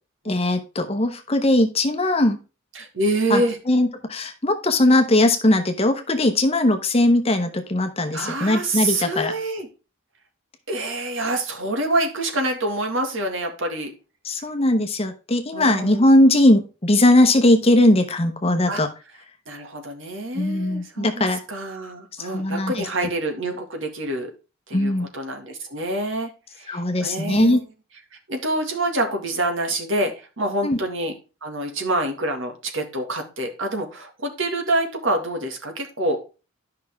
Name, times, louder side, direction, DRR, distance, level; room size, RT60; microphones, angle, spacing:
voice 1, 0.3-2.4 3.3-3.4 3.7-9.3 14.3-18.9 20.3-21.4 22.2-22.7 24.7-25.1 26.7-27.6 30.6-30.8, left 1 dB, 30° left, 6 dB, 0.9 m, -19 dB
voice 2, 2.7-3.6 8.0-9.7 10.7-13.9 15.5-16.2 18.7-18.8 19.5-24.3 24.7-26.3 26.6-27.6 28.3-31.1 31.4-36.2, right 1 dB, 65° right, 4 dB, 2.0 m, -26 dB
11.0 x 5.8 x 3.6 m, 0.32 s
head